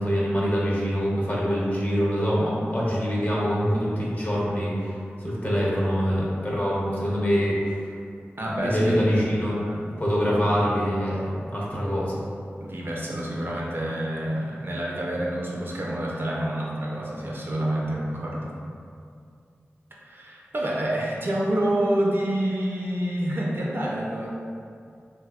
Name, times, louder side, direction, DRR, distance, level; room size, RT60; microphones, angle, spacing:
voice 1, 0.0-4.9 5.2-7.7 8.6-9.5 10.0-12.2, equal, 40° left, -6 dB, 0.7 m, -24 dB
voice 2, 8.4-9.0 9.7-9.8 12.6-18.6 20.0-24.3, right 1 dB, 55° right, -4 dB, 0.4 m, -28 dB
2.7 x 2.0 x 2.3 m, 2.3 s
cardioid pair, 45°, 5 cm